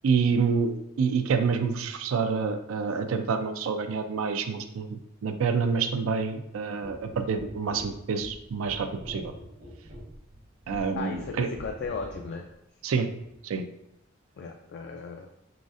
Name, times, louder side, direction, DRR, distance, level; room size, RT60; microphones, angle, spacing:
voice 1, 0.0-0.7 1.0-9.3 10.7-11.5 12.8-13.1 13.4-13.6, right 5 dB, 85° right, 8 dB, 0.4 m, -27 dB
sound 1, 6.8-12.4 13.2-13.4, equal, 60° right, 0.9 m, -45 dB
voice 2, 11.0-12.4 14.4-15.3, left 4 dB, 55° left, 2 dB, 0.3 m, -36 dB
4.0 x 3.8 x 2.4 m, 0.81 s
head